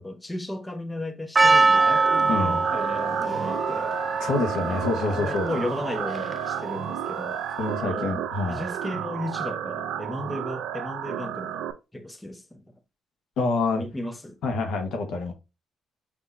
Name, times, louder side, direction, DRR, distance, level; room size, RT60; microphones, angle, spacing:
voice 1, 0.0-3.9 4.7-7.4 7.8-8.1 8.5-12.8 13.8-14.4, left 1 dB, 10° left, 0.7 m, -35 dB
Percussion, 1.4-6.6, right 3 dB, 25° right, 0.3 m, -23 dB
sound 1, 1.7-11.7, right 10 dB, 85° right, 0.4 m, -32 dB
voice 2, 2.3-2.6 4.2-5.5 7.6-8.6 13.4-13.8 14.4-15.3, left 3 dB, 80° left, 1.2 m, -27 dB
Wind instrument woodwind instrument, 3.4-8.0, left 11 dB, 35° left, 1.3 m, -44 dB
6.1 x 2.9 x 2.5 m
cardioid pair, 90°, 0 cm